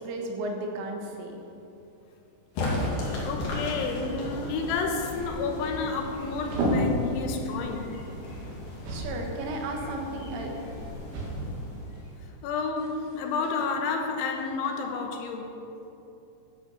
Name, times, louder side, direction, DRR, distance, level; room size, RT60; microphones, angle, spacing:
voice 1, 0.0-1.4 8.9-10.5, right 2 dB, 85° right, 1 dB, 4.0 m, -34 dB
sound 1, 1.3-14.7, equal, 55° right, 3.8 m, -37 dB
sound 2, 2.5-12.4, left 1 dB, 55° left, 3.8 m, -36 dB
voice 2, 2.8-7.9 12.4-15.5, left 4 dB, 75° left, 3 dB, 3.3 m, -31 dB
13.5 x 8.2 x 6.9 m, 2.8 s
omnidirectional pair, 5.6 m